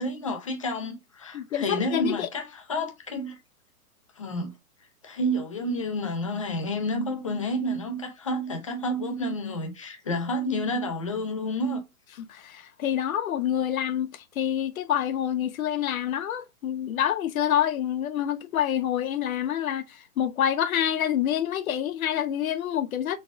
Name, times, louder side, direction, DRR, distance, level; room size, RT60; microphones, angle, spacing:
voice 1, 0.0-3.4 4.2-4.5 5.0-11.8, equal, 25° left, 0.4 m, -30 dB
voice 2, 1.3-2.3 12.3-23.2, left 10 dB, 65° left, 0.6 m, -27 dB
4.1 x 2.3 x 2.3 m
hypercardioid pair, 155°, 45 cm